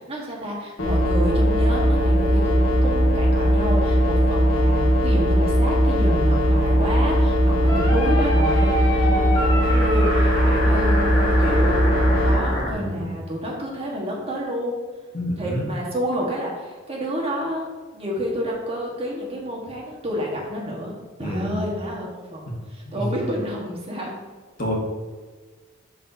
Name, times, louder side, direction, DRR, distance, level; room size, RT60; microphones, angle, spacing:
voice 1, 0.0-11.8 12.2-14.8 15.4-17.7 17.9-22.4 22.7-24.2, equal, 30° right, -3 dB, 1.4 m, -29 dB
sound 1, 0.8-12.4, equal, 80° left, 1.9 m, -19 dB
sound 2, 7.7-12.7, equal, 20° left, 1.6 m, -27 dB
voice 2, 12.7-13.1 15.1-15.7 21.2-21.7 22.8-23.1 24.6-24.7, equal, 45° left, -3 dB, 1.6 m, -28 dB
11.5 x 4.0 x 2.7 m, 1.4 s
head